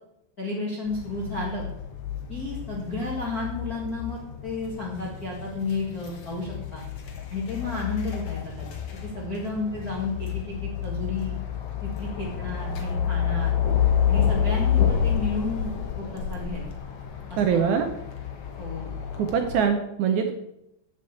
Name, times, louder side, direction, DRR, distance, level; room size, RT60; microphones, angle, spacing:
voice 1, 0.4-1.7 2.3-6.8 7.3-8.7 9.0-11.3 11.8-13.5 14.1-16.6 17.3-17.7 18.6-18.9, left 3 dB, 35° left, -4 dB, 1.7 m, -32 dB
sound 1, 0.9-19.6, left 8 dB, 55° left, 2.0 m, -29 dB
voice 2, 17.4-17.9 19.2-20.3, right 7 dB, 75° right, 5 dB, 1.7 m, -23 dB
8.1 x 8.0 x 8.4 m, 0.82 s
omnidirectional pair, 4.5 m